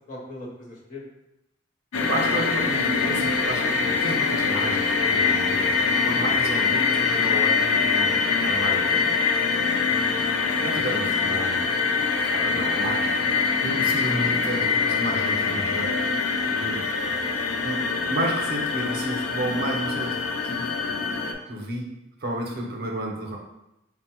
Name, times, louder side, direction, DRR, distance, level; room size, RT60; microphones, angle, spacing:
voice 1, 0.1-1.0 12.4-13.1 20.8-21.0, left 2 dB, 40° left, -2 dB, 0.7 m, -43 dB
sound 1, 1.9-21.3, left 5 dB, 80° left, 0.4 m, -24 dB
voice 2, 2.0-9.2 10.6-11.6 12.2-13.2 13.6-15.9 16.5-16.9 17.6-17.8 18.1-20.2 20.4-20.7 21.5-21.9 22.2-23.4, right 1 dB, 50° right, 0 dB, 0.6 m, -31 dB
4.0 x 2.1 x 4.3 m, 0.89 s
head